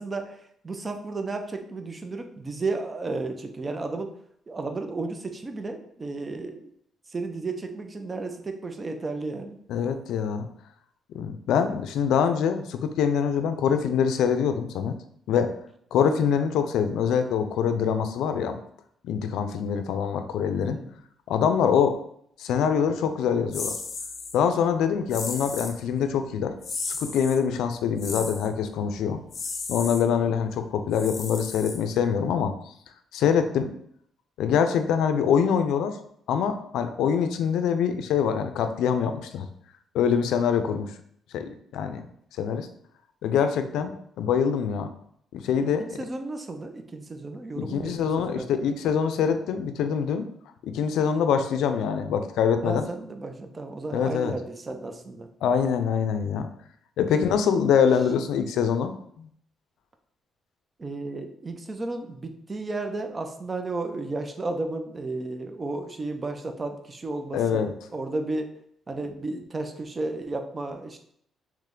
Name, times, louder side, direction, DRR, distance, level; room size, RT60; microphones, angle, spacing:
voice 1, 0.0-4.1 4.5-6.7 7.1-9.6 20.6-20.9 45.8-48.5 52.6-55.3 60.8-68.5 68.9-71.0, right 3 dB, 30° right, 7 dB, 0.5 m, -33 dB
voice 2, 9.7-10.5 11.1-15.0 15.3-15.5 15.9-18.6 19.0-20.8 21.3-22.0 22.4-23.8 24.3-26.5 26.8-29.2 29.7-32.7 33.1-33.7 34.4-36.0 36.3-39.5 39.9-40.9 41.3-42.0 42.4-42.7 43.2-44.9 45.3-45.8 47.6-50.3 50.6-52.8 53.9-54.3 55.4-56.5 57.0-59.3 67.3-67.7, left 7 dB, 85° left, 9 dB, 0.4 m, -24 dB
sound 1, 23.5-24.3 25.1-25.8 26.6-27.4 28.0-28.5 29.3-30.0 30.9-32.1, left 4 dB, 50° left, 0.7 m, -34 dB
3.3 x 3.0 x 3.7 m, 0.68 s
cardioid pair, 90°, 0 cm